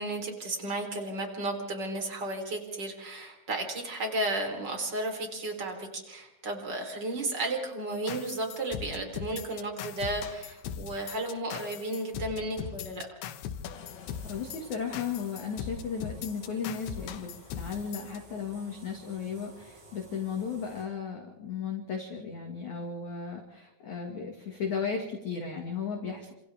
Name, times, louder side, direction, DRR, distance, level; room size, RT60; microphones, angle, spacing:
voice 1, 0.0-13.1, right 2 dB, 25° right, 2 dB, 3.4 m, -33 dB
sound 1, 8.1-18.2, left 8 dB, 70° left, 3.0 m, -40 dB
sound 2, 13.7-20.9, right 2 dB, 85° right, 9.8 m, -54 dB
voice 2, 14.2-26.3, left 6 dB, 55° left, 1 dB, 2.4 m, -35 dB
29.0 x 27.0 x 3.5 m, 0.95 s
omnidirectional pair, 6.0 m